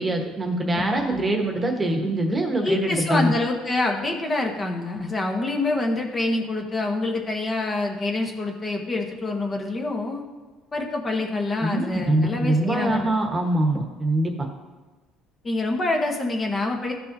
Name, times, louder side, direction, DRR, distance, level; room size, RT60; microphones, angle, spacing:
voice 1, 0.0-3.3 11.6-14.3, right 1 dB, 20° right, 3 dB, 1.2 m, -23 dB
voice 2, 0.7-1.3 2.6-10.2 10.7-13.1 15.4-16.9, left 2 dB, 25° left, 2 dB, 1.0 m, -26 dB
13.5 x 5.5 x 2.7 m, 1.3 s
cardioid pair, 115°, 0 cm